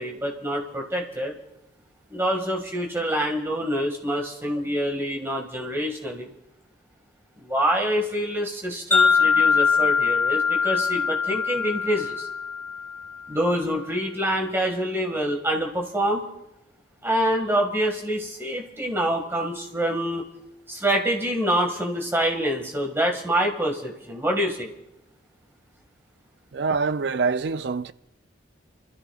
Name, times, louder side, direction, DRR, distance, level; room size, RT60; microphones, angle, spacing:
voice 1, 0.0-1.3 2.1-6.3 7.4-12.3 13.3-16.3 17.0-20.3 20.7-24.7, equal, 15° right, 1.9 m, -26 dB
Wind chime, 8.9-13.2, left 5 dB, 10° left, 2.1 m, -22 dB
voice 2, 26.5-27.9, right 4 dB, 60° right, 0.4 m, -25 dB
29.5 x 13.5 x 2.4 m
head